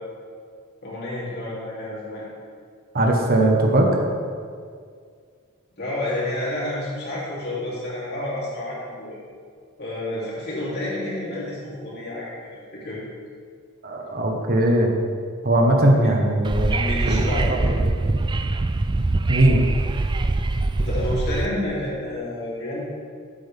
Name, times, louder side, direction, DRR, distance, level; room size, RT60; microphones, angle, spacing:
voice 1, 0.8-2.2 5.8-9.2 9.8-13.1 16.7-17.8 20.8-22.8, left 1 dB, 50° left, -7 dB, 3.1 m, -29 dB
voice 2, 2.9-3.9 13.8-14.9 15.4-16.7 17.0-17.2 17.5-17.7 19.3-19.6, right 1 dB, 45° right, 1 dB, 1.3 m, -19 dB
Wind / Subway metro underground, 16.4-21.5, right 2 dB, 20° right, 0.4 m, -23 dB
14.0 x 8.0 x 3.6 m, 2.1 s
head